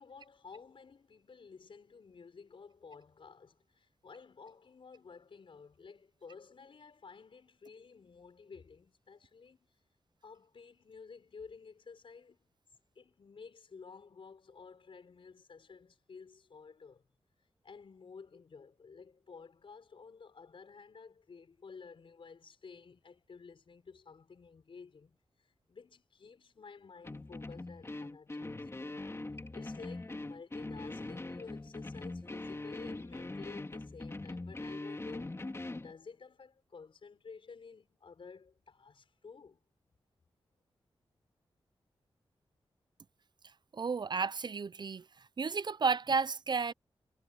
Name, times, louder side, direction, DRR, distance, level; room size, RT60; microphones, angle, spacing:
voice 1, 0.0-9.6 10.2-12.5 12.9-17.0 17.6-25.2 25.7-29.2 29.5-35.6 35.8-39.6, left 5 dB, 65° left, 5.1 m, -53 dB
sound 1, 27.0-35.9, left 2 dB, 30° left, 3.2 m, -42 dB
voice 2, 43.7-45.1 45.4-46.7, right 5 dB, 50° right, 0.6 m, -32 dB
cardioid pair, 65°, 10 cm